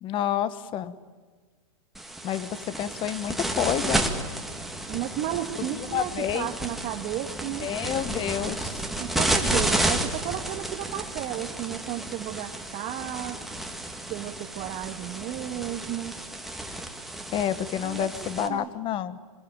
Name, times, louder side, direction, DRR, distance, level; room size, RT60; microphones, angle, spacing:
voice 1, 0.0-0.9 2.2-4.1 5.9-6.5 7.6-8.8 17.3-19.2, left 10 dB, 30° left, 15 dB, 1.2 m, -29 dB
sound 1, 1.9-18.5, right 1 dB, ahead, 2.0 m, -32 dB
voice 2, 4.9-7.7 9.0-13.4 14.1-16.2 17.8-18.1 18.4-18.7, right 13 dB, 35° right, 3 dB, 1.5 m, -33 dB
25.5 x 21.5 x 9.1 m, 1.5 s
hypercardioid pair, 130°, 18 cm